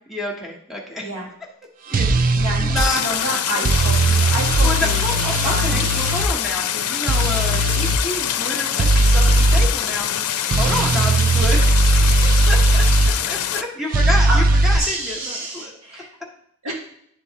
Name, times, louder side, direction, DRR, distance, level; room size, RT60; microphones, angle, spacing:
voice 1, 0.1-1.1 1.9-2.1 2.6-3.4 4.6-12.8 13.2-16.0 16.7-16.8, left 1 dB, ahead, -1 dB, 1.0 m, -29 dB
sound 1, 1.9-2.8 3.6-6.3 7.1-8.0 8.8-9.7 10.5-13.1 13.9-14.8, right 2 dB, 40° right, 0.4 m, -17 dB
voice 2, 2.4-5.0 5.4-5.8 14.3-14.4 14.8-16.1 16.6-16.7, right 1 dB, 70° right, -3 dB, 1.7 m, -29 dB
Stream, 2.8-13.6, left 10 dB, 90° left, 0.5 m, -24 dB
10.5 x 3.8 x 2.8 m, 0.70 s
head